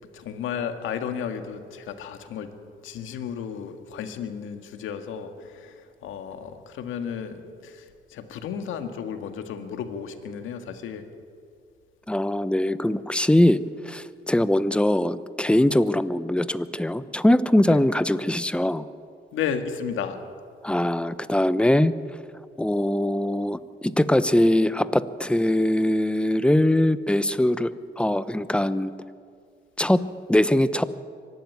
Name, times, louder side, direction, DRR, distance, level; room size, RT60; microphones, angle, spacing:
voice 1, 0.1-2.5 2.8-11.1 17.7-17.8 19.3-20.2, left 7 dB, 85° left, 7 dB, 1.9 m, -33 dB
voice 2, 12.1-18.9 20.6-21.9 22.6-28.9 29.8-30.0 30.3-30.8, left 1 dB, 5° left, 14 dB, 0.8 m, -22 dB
24.0 x 12.0 x 9.6 m, 2.2 s
cardioid pair, 90°, 20 cm